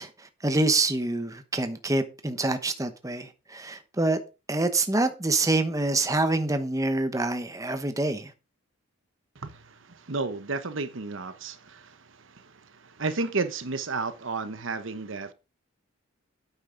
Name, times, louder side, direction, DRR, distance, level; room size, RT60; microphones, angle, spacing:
voice 1, 0.0-4.2 4.5-8.3, right 2 dB, 15° right, 1.0 m, -26 dB
voice 2, 9.4-15.3, right 3 dB, 65° right, 1.0 m, -33 dB
10.5 x 8.7 x 3.9 m
head